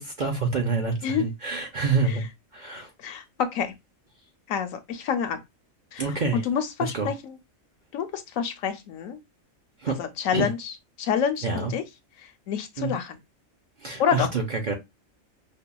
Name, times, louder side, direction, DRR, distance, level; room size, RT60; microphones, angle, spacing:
voice 1, 0.0-2.3 2.5-2.9 6.0-6.5 6.9-7.1 9.8-10.0 10.3-10.5 11.4-11.7 12.8-13.0 13.8-14.7, right 4 dB, 50° right, 0.5 m, -27 dB
voice 2, 3.0-3.8 4.5-5.4 5.9-6.0 6.3-7.4 7.9-9.2 9.9-10.7 11.0-11.8 12.2-13.2 14.0-14.3, left 8 dB, 80° left, 1.0 m, -28 dB
5.4 x 2.3 x 2.2 m
omnidirectional pair, 1.4 m